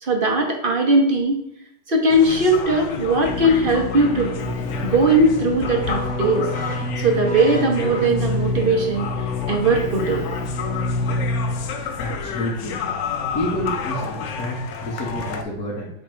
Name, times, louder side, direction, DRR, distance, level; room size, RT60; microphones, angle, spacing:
voice 1, 0.0-1.4 1.9-4.3 4.8-6.5 7.0-9.1 9.5-10.2, right 2 dB, 35° right, 1 dB, 1.0 m, -19 dB
sound 1, 2.1-15.4, left 5 dB, 70° left, 0.7 m, -30 dB
Keyboard (musical), 3.2-11.9, left 2 dB, 5° left, 1.2 m, -28 dB
voice 2, 11.7-12.8 13.0-15.9, equal, 55° left, -6 dB, 1.5 m, -29 dB
7.8 x 3.0 x 4.4 m, 0.79 s
omnidirectional pair, 2.0 m